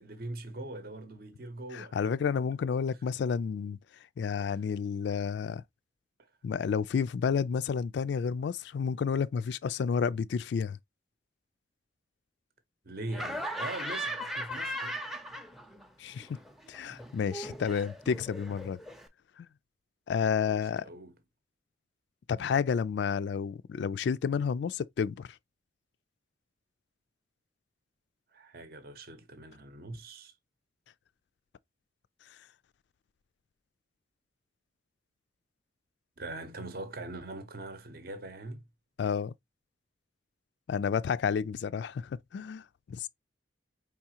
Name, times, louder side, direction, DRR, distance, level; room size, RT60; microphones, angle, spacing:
voice 1, 0.0-2.1 4.4-4.6 12.8-15.0 16.9-17.0 20.5-21.2 28.3-30.3 36.2-38.6, right 2 dB, 50° right, 0.7 m, -42 dB
voice 2, 1.7-3.8 4.2-5.6 6.4-10.8 16.0-16.3 16.7-18.8 19.4-19.5 20.1-20.9 22.3-25.3 39.0-39.3 40.7-43.1, left 6 dB, 65° left, 0.3 m, -30 dB
Laughter, 13.1-15.9 16.2-19.1, equal, ahead, 0.5 m, -38 dB
4.7 x 3.6 x 2.8 m
head